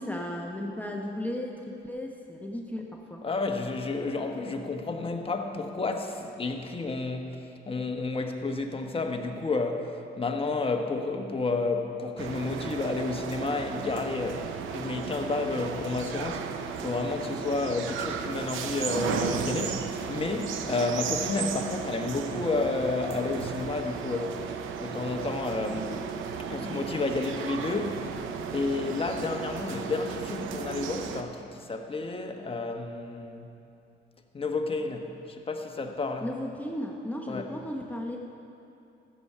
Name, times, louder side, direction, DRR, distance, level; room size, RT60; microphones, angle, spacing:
voice 1, 0.0-3.2 36.2-38.2, left 1 dB, 10° left, 0 dB, 1.0 m, -35 dB
voice 2, 3.2-7.4 7.7-24.4 24.8-26.0 26.5-28.1 28.5-33.5 34.3-36.3 37.3-37.5, left 3 dB, 30° left, 4 dB, 1.2 m, -31 dB
sound 1, 12.2-31.2, right 6 dB, 85° right, 0.8 m, -34 dB
14.0 x 7.1 x 6.7 m, 2.7 s
cardioid pair, 90°, 20 cm